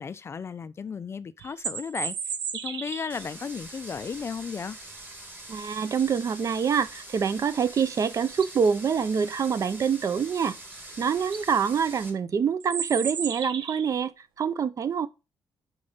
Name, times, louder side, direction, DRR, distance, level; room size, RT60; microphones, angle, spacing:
voice 1, 0.0-2.4 2.6-4.8, left 6 dB, 30° left, 0.4 m, -35 dB
sound 1, 1.4-3.2 7.7-7.8 8.2-8.7 10.7-10.8 11.2-11.4 12.6-14.0, right 7 dB, 75° right, 1.0 m, -34 dB
sound 2, 3.1-12.1, right 2 dB, 25° right, 1.9 m, -44 dB
voice 2, 5.5-10.6 11.0-14.1 14.4-15.1, right 6 dB, 40° right, 0.5 m, -26 dB
5.2 x 4.8 x 5.4 m
wide cardioid pair, 150°, 8 cm